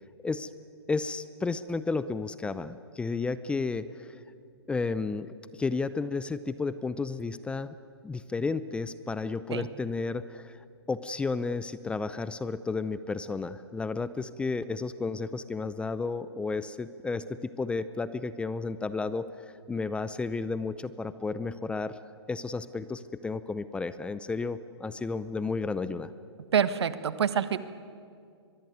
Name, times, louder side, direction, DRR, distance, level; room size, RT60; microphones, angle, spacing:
voice 1, 0.9-4.2 4.7-7.7 8.0-10.6 10.9-22.0 22.3-26.1, left 4 dB, 5° left, 15 dB, 0.6 m, -32 dB
voice 2, 26.5-27.6, right 8 dB, 70° right, 13 dB, 1.5 m, -26 dB
23.0 x 23.0 x 9.5 m, 2.3 s
hypercardioid pair, 130°, 14 cm